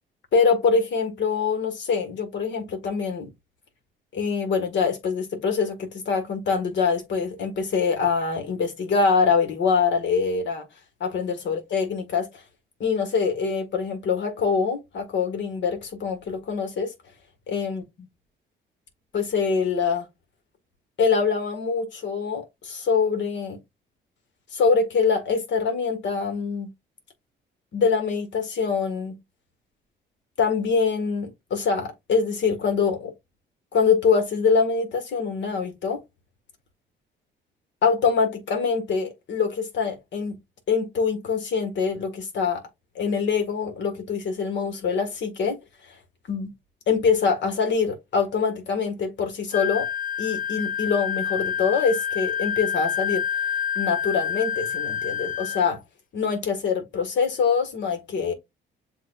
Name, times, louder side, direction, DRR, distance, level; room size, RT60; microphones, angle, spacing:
voice 1, 0.3-3.3 4.1-10.7 11.0-12.3 12.8-16.9 17.5-17.8 19.1-20.1 21.0-23.6 24.5-26.7 27.7-29.2 30.4-33.1 33.7-36.0 37.8-40.4 40.7-42.6 42.9-45.6 46.3-46.5 46.9-49.9 50.2-53.2 53.7-55.8 56.1-58.3, left 5 dB, 65° left, 1.6 m, -24 dB
Wind instrument woodwind instrument, 49.5-55.7, left 8 dB, 45° left, 0.6 m, -28 dB
7.6 x 2.6 x 2.4 m
cardioid pair, 90°, 20 cm